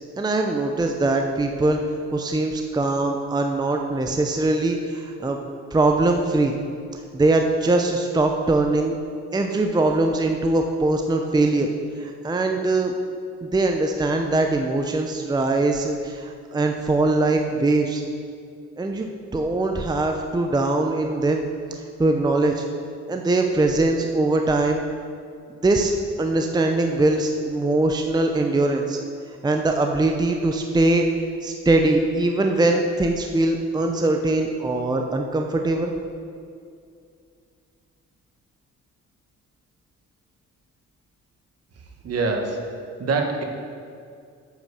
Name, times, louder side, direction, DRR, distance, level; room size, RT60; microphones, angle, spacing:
voice 1, 0.2-1.8 2.1-5.4 5.7-6.5 7.1-9.0 9.3-11.7 12.0-12.9 13.4-18.0 18.8-21.4 22.0-22.7 23.1-24.8 25.6-25.9 26.2-29.0 29.4-31.0 31.4-35.9, right 2 dB, 15° right, 3 dB, 0.6 m, -22 dB
voice 2, 42.0-42.6 43.0-43.4, right 3 dB, 55° right, 2 dB, 1.4 m, -24 dB
8.9 x 5.2 x 6.8 m, 2.3 s
cardioid pair, 90°, 30 cm